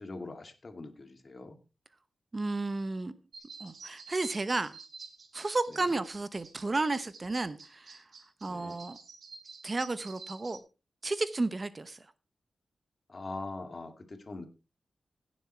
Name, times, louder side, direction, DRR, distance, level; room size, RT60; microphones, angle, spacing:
voice 1, 0.0-1.6 5.7-5.9 8.5-8.8 13.1-14.5, left 3 dB, 40° left, 8 dB, 2.0 m, -42 dB
voice 2, 2.3-3.1 3.6-4.7 5.3-8.0 8.4-9.0 9.6-10.6 11.0-12.0, right 3 dB, 35° right, 14 dB, 0.9 m, -32 dB
sound 1, 3.3-10.6, right 4 dB, 65° right, 2.4 m, -50 dB
16.5 x 7.3 x 4.3 m, 0.30 s
wide cardioid pair, 95°, 0 cm